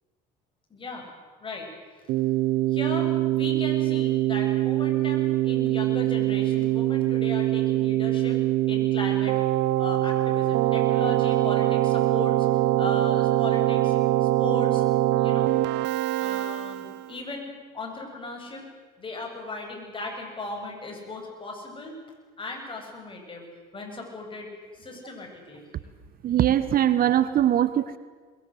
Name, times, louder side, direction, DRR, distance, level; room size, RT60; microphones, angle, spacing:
voice 1, 0.7-1.1 1.4-1.7 2.7-8.4 8.7-9.4 9.8-12.4 12.8-14.0 14.2-14.8 15.2-15.5 16.2-18.7 19.0-22.0 22.4-23.4 23.7-25.6, left 2 dB, 25° left, 2 dB, 7.8 m, -37 dB
Keyboard (musical), 2.1-17.1, right 14 dB, 70° right, 0.9 m, -23 dB
voice 2, 26.2-28.0, right 11 dB, 50° right, 13 dB, 1.3 m, -21 dB
22.5 x 22.0 x 8.1 m, 1.5 s
supercardioid pair, 95°, 19 cm